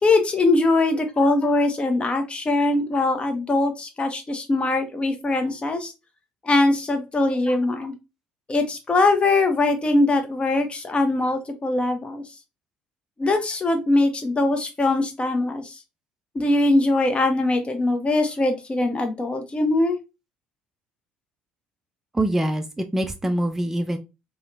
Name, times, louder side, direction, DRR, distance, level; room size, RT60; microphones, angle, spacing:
voice 1, 0.0-5.9 6.4-7.9 8.5-12.2 13.2-15.8 16.3-20.0, left 2 dB, 25° left, 7 dB, 0.7 m, -21 dB
voice 2, 22.1-24.0, right 1 dB, 10° right, 5 dB, 0.4 m, -24 dB
2.8 x 2.2 x 2.5 m, 0.25 s
hypercardioid pair, 60°, 4 cm